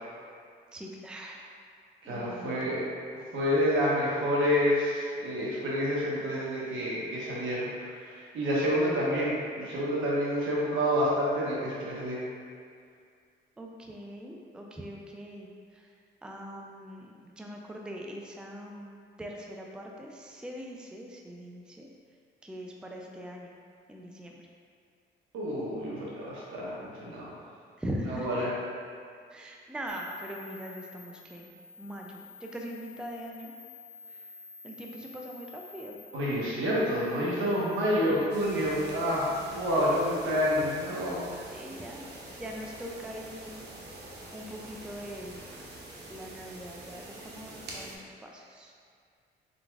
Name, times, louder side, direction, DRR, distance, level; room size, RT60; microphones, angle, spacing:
voice 1, 0.7-1.5 2.1-2.8 13.6-15.9 16.2-21.9 22.4-23.5 23.9-24.4 27.8-28.5 29.3-31.5 31.8-33.5 34.6-36.0 41.5-42.1 42.4-43.5 44.3-45.4 46.1-48.7, equal, 5° right, 0 dB, 0.4 m, -41 dB
voice 2, 2.0-2.8 3.3-7.7 8.1-12.2 25.3-27.4 28.1-28.5 36.1-41.2, equal, 80° right, -6 dB, 1.2 m, -28 dB
sound 1, 29.9-38.2, left 4 dB, 45° left, 0.8 m, -50 dB
sound 2, 38.3-47.9, right 1 dB, 55° right, 0.8 m, -45 dB
4.2 x 4.0 x 2.4 m, 2.2 s
cardioid pair, 90°, 20 cm